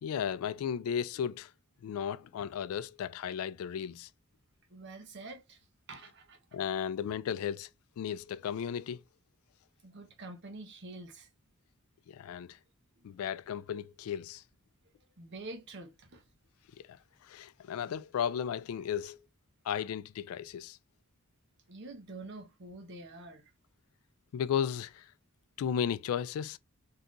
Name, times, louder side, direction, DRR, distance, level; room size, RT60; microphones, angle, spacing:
voice 1, 0.0-1.5 1.8-4.1 6.5-7.7 8.0-9.0 12.1-12.6 13.0-14.4 16.8-17.0 17.2-19.2 19.6-20.8 24.3-25.1 25.6-26.6, left 8 dB, 75° left, 0.3 m, -35 dB
voice 2, 4.7-6.4 9.8-11.3 13.0-13.1 14.8-16.3 21.7-23.5, right 2 dB, 55° right, 0.8 m, -47 dB
3.7 x 2.8 x 2.4 m
head